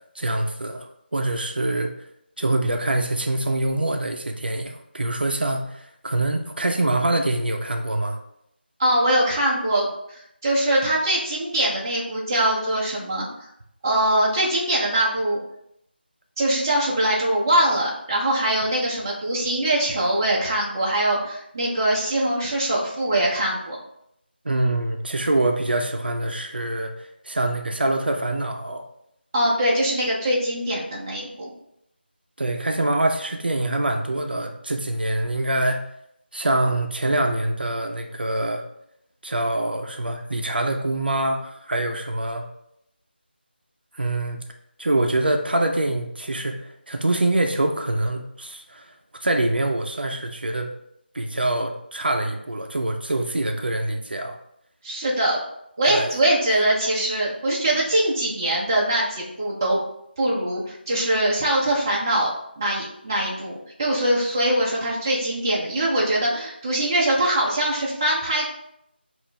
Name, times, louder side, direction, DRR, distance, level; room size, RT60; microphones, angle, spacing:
voice 1, 0.1-0.9 1.1-1.9 2.4-8.2 24.4-28.8 32.4-35.8 36.3-38.6 39.2-42.5 43.9-44.4 44.8-48.9 49.2-50.7 51.1-54.4 55.9-56.1, right 1 dB, 60° right, 4 dB, 0.6 m, -25 dB
voice 2, 8.8-13.3 13.8-15.4 16.4-23.8 29.3-31.5 54.8-55.4 55.8-59.8 60.2-62.3 62.6-68.5, right 1 dB, 20° right, -5 dB, 0.6 m, -22 dB
5.7 x 2.5 x 3.2 m, 0.76 s
figure-of-eight pair, 165°, 6 cm